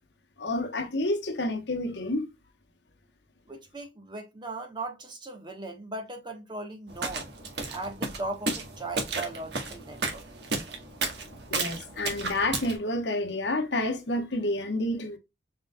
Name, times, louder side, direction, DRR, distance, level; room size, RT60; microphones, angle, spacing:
voice 1, 0.4-2.2 11.5-15.2, left 1 dB, 65° left, 1.1 m, -29 dB
voice 2, 3.5-7.3 7.7-10.2, right 2 dB, 25° right, 1.2 m, -38 dB
sound 1, 6.9-12.8, right 3 dB, 60° right, 1.5 m, -33 dB
4.9 x 3.9 x 2.3 m
head